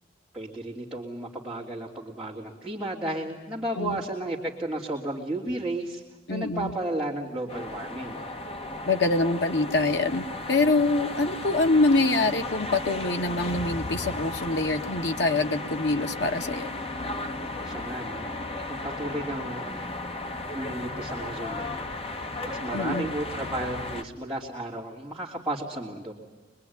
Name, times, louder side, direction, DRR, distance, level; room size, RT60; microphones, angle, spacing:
voice 1, 0.3-6.0 6.3-8.2 17.4-18.4 18.7-19.7 20.5-21.9 22.5-26.1, right 1 dB, 5° right, -8 dB, 3.3 m, -33 dB
voice 2, 6.3-6.8 8.9-16.7 22.7-23.1, left 2 dB, 65° left, 5 dB, 1.5 m, -25 dB
sound 1, 7.5-24.0, left 2 dB, 30° left, 1.4 m, -35 dB
25.0 x 23.0 x 9.6 m, 1.2 s
head